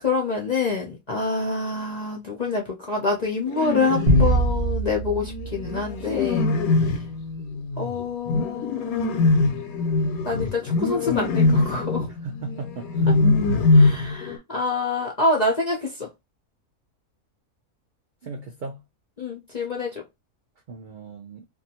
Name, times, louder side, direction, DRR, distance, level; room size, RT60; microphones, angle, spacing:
voice 1, 0.0-6.5 7.8-9.3 10.2-12.1 13.7-16.1 19.2-20.0, left 3 dB, 55° left, 0.4 m, -26 dB
sound 1, 3.5-4.4 5.2-14.4, left 3 dB, 90° left, 1.1 m, -22 dB
sound 2, 4.1-6.7, right 3 dB, 50° right, 0.9 m, -25 dB
voice 2, 12.2-13.3 18.2-18.8 20.7-21.4, right 3 dB, 80° right, 0.4 m, -36 dB
2.6 x 2.3 x 2.7 m
omnidirectional pair, 1.5 m